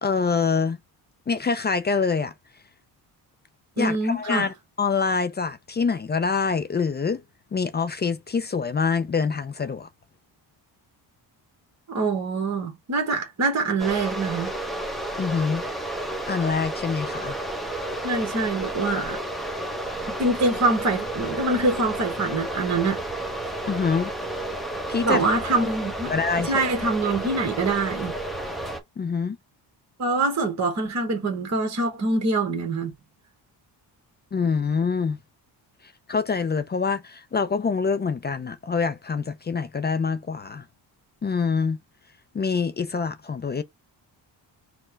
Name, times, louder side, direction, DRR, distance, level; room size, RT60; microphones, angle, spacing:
voice 1, 0.0-0.8 1.3-2.3 3.8-7.2 7.5-9.9 15.2-15.6 16.3-17.4 23.7-24.1 24.9-25.2 26.1-26.5 29.0-29.4 34.3-35.2 36.1-40.6 41.2-41.8 42.3-43.6, left 5 dB, 25° left, 0.4 m, -25 dB
voice 2, 3.8-4.5 11.9-14.5 18.0-19.2 20.2-23.0 25.0-26.1 26.4-28.2 30.0-32.9, right 3 dB, 35° right, 1.3 m, -24 dB
sound 1, 13.8-28.8, right 1 dB, ahead, 0.9 m, -31 dB
4.4 x 2.2 x 4.3 m
cardioid pair, 95°, 44 cm